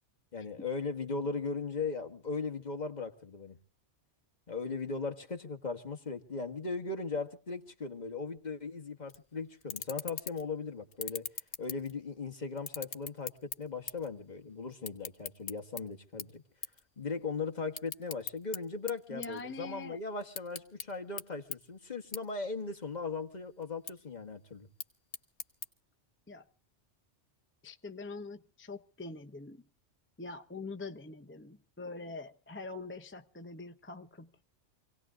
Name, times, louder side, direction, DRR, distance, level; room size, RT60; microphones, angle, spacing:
voice 1, 0.3-3.6 4.5-11.3 11.6-16.4 17.0-24.7, left 4 dB, 40° left, 1.6 m, -38 dB
sound 1, 9.1-9.2 9.6-10.5 10.9-12.2 12.6-14.1 14.4-15.8 16.2-16.4 16.6-16.8 17.2-18.6 18.9-19.8 20.2-20.9 21.2-21.3 21.5-21.6 22.1-22.2 22.6-23.1 23.6-23.9 24.6-25.7, left 6 dB, 70° left, 1.5 m, -40 dB
voice 2, 19.1-20.0 26.3-26.5 27.6-29.6 30.2-34.3, left 3 dB, 15° left, 0.6 m, -44 dB
28.0 x 18.0 x 2.4 m
omnidirectional pair, 1.2 m